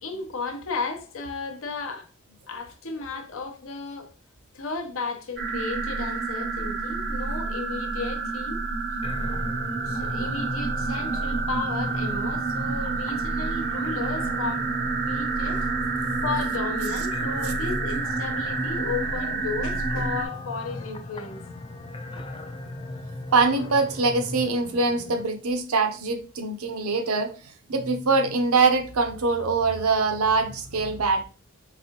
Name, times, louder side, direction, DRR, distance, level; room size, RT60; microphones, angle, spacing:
voice 1, 0.0-2.1 2.5-4.1 4.5-8.6 9.8-14.7 15.1-15.7 16.2-21.4 22.1-22.3, left 4 dB, 70° left, 0.7 m, -34 dB
sound 1, 5.4-20.2, right 4 dB, 45° right, 0.5 m, -29 dB
sound 2, 9.0-25.2, left 2 dB, 25° left, 0.3 m, -37 dB
voice 2, 23.3-31.2, right 3 dB, 90° right, 0.7 m, -23 dB
4.1 x 3.5 x 2.8 m
head